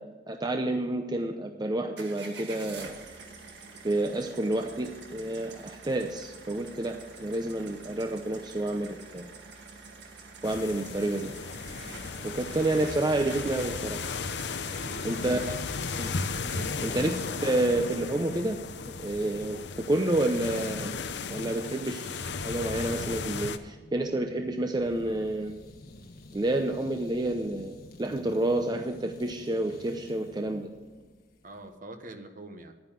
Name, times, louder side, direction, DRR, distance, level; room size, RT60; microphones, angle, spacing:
voice 1, 0.0-3.0 3.8-9.3 10.4-11.3 12.2-14.0 15.0-15.4 16.0-16.1 16.8-18.6 19.0-20.9 21.3-25.6 26.3-30.7, right 1 dB, 25° right, 5 dB, 0.7 m, -29 dB
sound 1, 2.0-17.9, right 3 dB, 85° right, 1.7 m, -47 dB
sound 2, 10.4-23.6, left 4 dB, 80° left, 0.7 m, -35 dB
voice 2, 14.7-15.6 16.5-16.8 31.4-32.7, right 2 dB, 50° right, 7 dB, 1.3 m, -44 dB
sound 3, 23.7-31.7, left 1 dB, 60° left, 1.4 m, -51 dB
11.0 x 9.5 x 7.5 m, 1.3 s
head